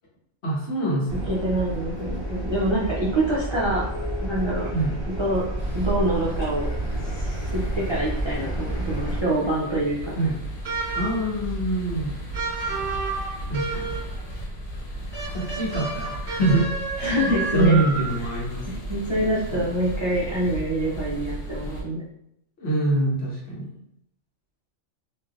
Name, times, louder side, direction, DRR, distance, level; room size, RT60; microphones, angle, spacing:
voice 1, 0.4-1.3 4.7-4.9 10.2-10.4 10.9-12.1 13.5-14.0 15.3-16.7 17.5-18.6 19.5-19.7 22.6-23.7, right 2 dB, 55° left, -5 dB, 1.2 m, -24 dB
sound 1, 1.1-9.2, right 1 dB, 20° left, 1.4 m, -30 dB
voice 2, 1.3-3.8 4.2-4.7 5.2-5.4 5.7-6.7 7.2-10.1 17.0-17.8 18.9-22.0, right 1 dB, 50° right, -7 dB, 0.3 m, -25 dB
sound 2, 5.6-21.8, right 1 dB, 80° left, 1.3 m, -35 dB
sound 3, 10.6-11.3 12.3-14.2 15.1-18.3, right 4 dB, 20° right, 1.1 m, -31 dB
3.2 x 2.6 x 2.3 m, 0.77 s
omnidirectional pair, 1.3 m